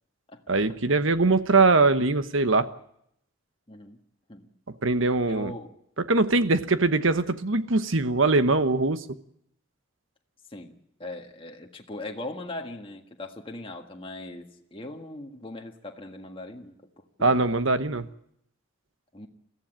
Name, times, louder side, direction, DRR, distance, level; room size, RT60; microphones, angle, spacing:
voice 1, 0.5-2.7 4.8-5.5 6.1-9.0 17.2-18.1, right 3 dB, 70° right, 11 dB, 1.1 m, -22 dB
voice 2, 3.7-4.0 4.3-4.5 5.3-5.7 10.5-17.5 19.1-19.3, left 2 dB, 25° left, 2 dB, 1.7 m, -40 dB
22.0 x 15.0 x 8.9 m, 0.74 s
head